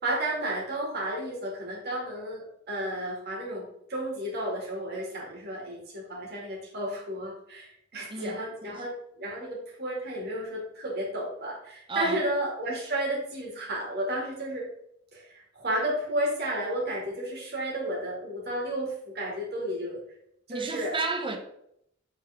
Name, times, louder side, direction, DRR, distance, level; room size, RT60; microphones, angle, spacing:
voice 1, 0.0-3.6 3.9-14.7 15.1-20.0 20.5-21.0, right 1 dB, 50° right, 2.4 m, -32 dB
voice 2, 11.9-12.2 20.5-21.4, right 3 dB, 25° right, 0.8 m, -31 dB
7.7 x 4.0 x 3.6 m
head